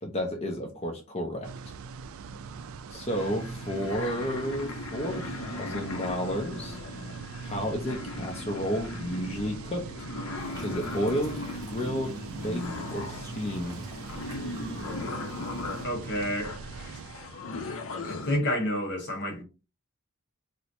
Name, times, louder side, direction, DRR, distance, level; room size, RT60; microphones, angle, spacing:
voice 1, 0.0-1.5 2.9-6.8 7.4-9.9 10.6-12.6 12.9-13.8, equal, 30° left, 0.5 m, -32 dB
sound 1, 1.4-17.8, right 5 dB, 70° right, 0.3 m, -42 dB
sound 2, 3.1-18.4, left 2 dB, 70° left, 0.6 m, -38 dB
sound 3, 10.4-15.9, right 2 dB, 20° right, 0.8 m, -50 dB
voice 2, 15.8-17.0 18.0-19.4, equal, 55° left, 1.1 m, -30 dB
4.3 x 2.1 x 2.6 m
head